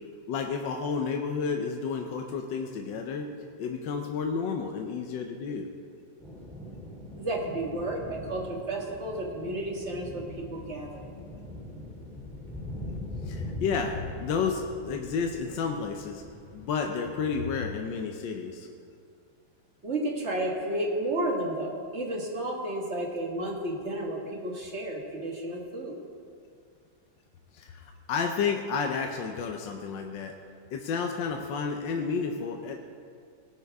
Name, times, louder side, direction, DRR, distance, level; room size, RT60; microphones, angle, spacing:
voice 1, 0.3-3.3 3.6-5.7 13.2-16.2 16.5-18.7 27.5-30.4 30.7-32.8, left 5 dB, 75° left, 3 dB, 1.4 m, -31 dB
sound 1, 6.2-16.7, left 1 dB, ahead, 2.6 m, -41 dB
voice 2, 7.2-11.0 19.8-26.0, right 1 dB, 35° right, -1 dB, 1.9 m, -32 dB
18.0 x 10.5 x 3.5 m, 2.2 s
omnidirectional pair, 2.1 m